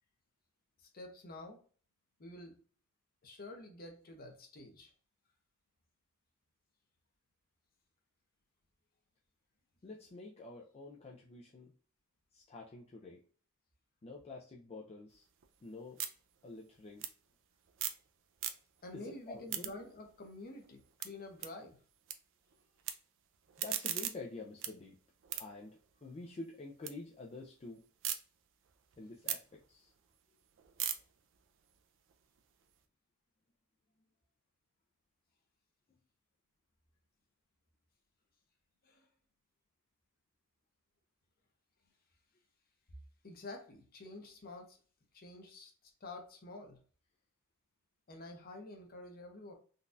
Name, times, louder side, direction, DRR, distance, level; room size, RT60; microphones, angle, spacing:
voice 1, 0.8-1.6 2.2-2.6 3.2-4.9 18.8-21.8 38.8-39.1 43.2-44.8 45.1-45.7 46.0-46.8 48.1-49.5, left 2 dB, 45° left, 3 dB, 0.8 m, -49 dB
voice 2, 9.8-11.7 12.3-13.2 14.0-15.2 15.6-16.0 16.4-17.1 18.9-19.7 23.6-25.0 25.4-27.8 29.0-29.9, left 3 dB, 30° left, -1 dB, 0.4 m, -48 dB
sound 1, 15.1-18.1 18.3-18.9 19.3-22.1 22.4-22.9 23.3-26.9 27.3-28.2 28.6-32.8, right 10 dB, 60° right, 0.4 m, -42 dB
3.8 x 2.3 x 2.5 m, 0.41 s
head